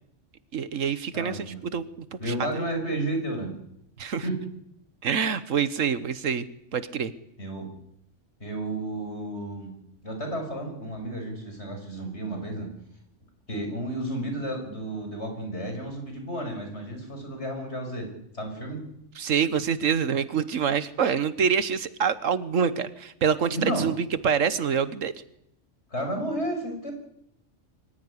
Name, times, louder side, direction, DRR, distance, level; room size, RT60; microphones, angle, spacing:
voice 1, 0.5-2.3 4.0-4.2 5.0-6.4 6.7-7.1 19.2-25.1, right 7 dB, 90° right, 14 dB, 1.6 m, -26 dB
voice 2, 1.1-1.6 2.2-3.5 4.2-4.4 7.4-7.7 8.4-9.7 10.0-12.7 13.5-18.1 18.3-18.8 23.5-23.9 25.9-26.9, right 1 dB, 60° left, 4 dB, 6.4 m, -32 dB
23.5 x 15.5 x 10.0 m, 0.78 s
omnidirectional pair, 1.3 m